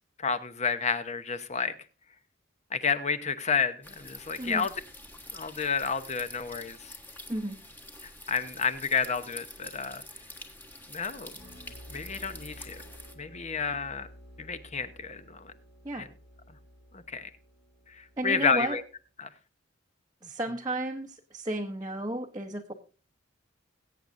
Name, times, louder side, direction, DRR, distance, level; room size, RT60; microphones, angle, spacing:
voice 1, 0.2-1.7 2.7-4.7 5.3-7.0 8.0-10.0 10.9-11.4 11.9-12.8 13.2-14.1 14.4-15.5 16.0-16.1 16.9-17.3 18.0-18.8 19.2-19.3, left 5 dB, 35° left, 12 dB, 0.9 m, -30 dB
sound 1, 3.8-13.1, left 1 dB, 10° left, 1.3 m, -47 dB
voice 2, 4.4-4.7 7.3-7.6 15.8-16.1 18.2-18.8 20.2-22.7, right 1 dB, 20° right, 1 dB, 0.8 m, -33 dB
sound 2, 11.3-18.9, equal, 60° left, 6.2 m, -52 dB
21.0 x 8.6 x 2.6 m, 0.35 s
head